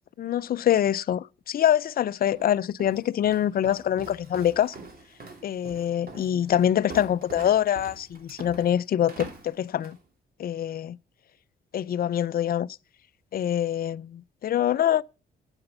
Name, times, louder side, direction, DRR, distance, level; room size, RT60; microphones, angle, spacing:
voice 1, 0.2-4.7 5.4-10.0 10.4-11.0 11.7-12.7 13.3-15.0, left 10 dB, 50° left, 0.5 m, -25 dB
Walk footsteps, 2.3-10.1, right 3 dB, 50° right, 3.1 m, -44 dB
8.9 x 8.4 x 6.8 m
cardioid pair, 90°, 20 cm